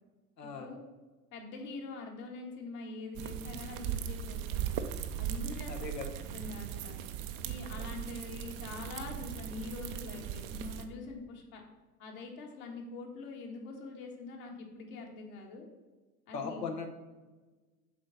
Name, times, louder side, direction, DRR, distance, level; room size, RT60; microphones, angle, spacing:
voice 1, 0.4-0.7 5.7-6.1 16.3-16.9, left 5 dB, 80° left, 4 dB, 1.0 m, -38 dB
voice 2, 1.3-4.8 5.2-5.7 6.3-7.0 7.4-11.6 12.0-15.7 16.3-16.7, left 3 dB, 60° left, 1 dB, 1.8 m, -44 dB
sound 1, 3.1-10.8, right 10 dB, 30° right, 0.4 m, -38 dB
7.5 x 4.1 x 5.6 m, 1.3 s
figure-of-eight pair, 90°, 49 cm